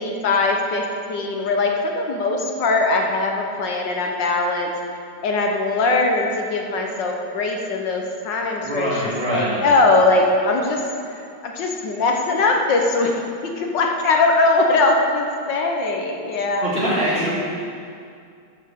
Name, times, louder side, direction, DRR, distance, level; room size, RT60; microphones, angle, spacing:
voice 1, 0.0-4.7 5.2-9.0 9.3-10.8 11.4-13.1 13.6-16.7, left 3 dB, 70° left, 1 dB, 1.6 m, -21 dB
voice 2, 8.6-9.6 16.6-17.3, equal, 30° right, -9 dB, 3.6 m, -23 dB
13.0 x 5.7 x 6.4 m, 2.4 s
omnidirectional pair, 2.0 m